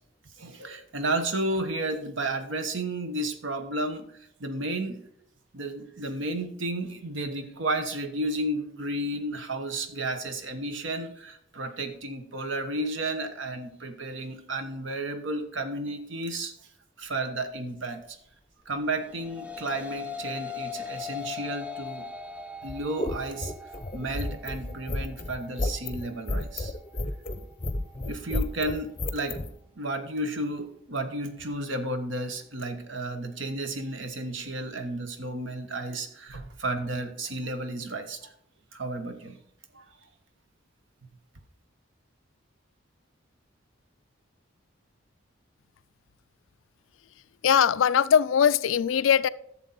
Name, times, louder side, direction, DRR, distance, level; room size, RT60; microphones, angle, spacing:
voice 1, 0.4-4.1 4.4-5.0 5.5-16.5 17.0-18.2 18.7-22.1 22.6-23.5 23.9-26.7 28.0-38.3 38.7-39.4 39.7-39.8, right 2 dB, 70° right, 8 dB, 1.2 m, -32 dB
sound 1, 18.9-28.1, left 6 dB, 5° right, 0.5 m, -41 dB
sound 2, 22.6-29.5, left 1 dB, 30° left, 0.7 m, -31 dB
voice 2, 47.4-49.3, left 8 dB, 75° left, 17 dB, 0.4 m, -21 dB
11.5 x 7.3 x 4.2 m, 0.75 s
head